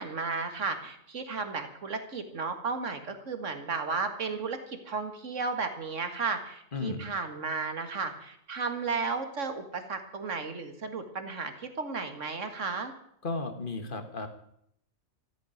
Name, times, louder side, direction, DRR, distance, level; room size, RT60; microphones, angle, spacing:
voice 1, 0.0-12.9, right 4 dB, 65° right, 7 dB, 2.2 m, -34 dB
voice 2, 6.7-7.1 13.2-14.3, left 3 dB, 40° left, 7 dB, 1.8 m, -34 dB
14.0 x 9.4 x 9.2 m, 0.72 s
omnidirectional pair, 1.4 m